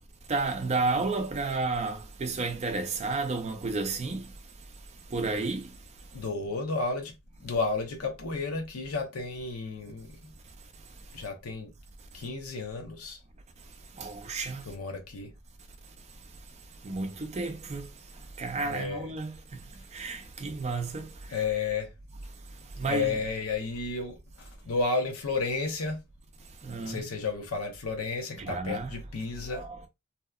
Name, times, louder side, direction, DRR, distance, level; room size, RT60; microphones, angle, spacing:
voice 1, 0.3-4.2 5.1-5.7 14.0-14.7 16.8-17.9 18.4-19.6 19.9-21.4 22.8-23.2 26.6-27.0 28.4-29.0 29.5-29.9, right 3 dB, 30° right, 0.4 m, -32 dB
voice 2, 6.1-7.1 7.4-10.3 11.1-11.7 12.1-13.2 14.7-15.3 18.7-19.0 21.3-21.9 22.9-24.2 24.7-26.0 26.8-29.7, left 4 dB, 80° left, 0.6 m, -32 dB
2.7 x 2.0 x 2.3 m
head